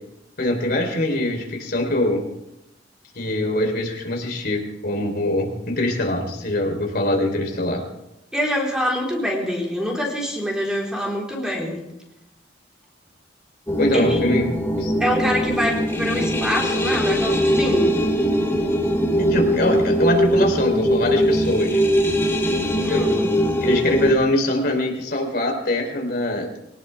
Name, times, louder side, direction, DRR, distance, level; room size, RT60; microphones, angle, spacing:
voice 1, 0.4-2.2 3.1-7.8 13.8-14.9 19.2-21.8 22.8-23.1 23.6-26.6, left 1 dB, 55° left, 2 dB, 3.4 m, -23 dB
voice 2, 8.3-11.8 13.9-14.2 15.0-18.0 22.8-23.3, equal, 5° right, -2 dB, 3.8 m, -25 dB
sound 1, 13.7-24.1, equal, 15° left, 2.1 m, -21 dB
22.5 x 18.5 x 3.4 m, 0.88 s
head